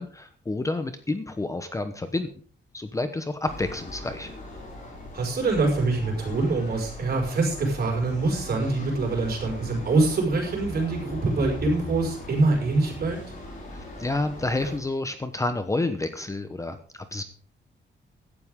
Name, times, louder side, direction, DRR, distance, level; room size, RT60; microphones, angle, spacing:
voice 1, 0.0-2.3 2.7-4.3 13.7-17.2, left 2 dB, 15° left, 9 dB, 0.9 m, -29 dB
sound 1, 3.5-14.8, left 1 dB, 40° left, 5.5 m, -39 dB
voice 2, 5.1-13.2, right 3 dB, 55° right, 1 dB, 5.6 m, -24 dB
16.5 x 12.0 x 3.7 m, 0.43 s
wide cardioid pair, 175°, 19 cm